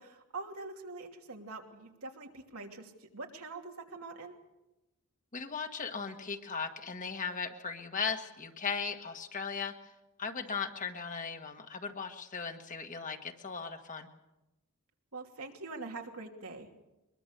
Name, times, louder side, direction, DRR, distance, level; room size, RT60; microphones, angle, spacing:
voice 1, 0.0-4.4 15.1-16.7, right 3 dB, 85° right, 2 dB, 2.9 m, -44 dB
voice 2, 5.3-9.7 10.2-14.1, left 5 dB, 35° left, 6 dB, 1.6 m, -37 dB
22.5 x 22.5 x 6.8 m, 0.97 s
head